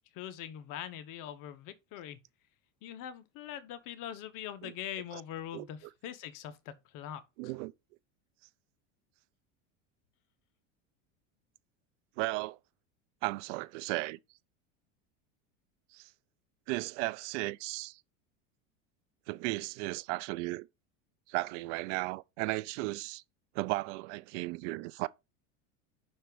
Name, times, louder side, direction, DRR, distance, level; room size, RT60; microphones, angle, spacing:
voice 1, 0.1-2.2 2.8-7.5, left 10 dB, 55° left, 1.2 m, -43 dB
voice 2, 7.4-7.7 12.2-12.6 13.2-14.2 15.9-16.1 16.7-18.0 19.3-20.7 21.3-23.2 23.5-25.1, right 21 dB, 65° right, 0.6 m, -35 dB
5.8 x 4.4 x 5.2 m
supercardioid pair, 105°, 39 cm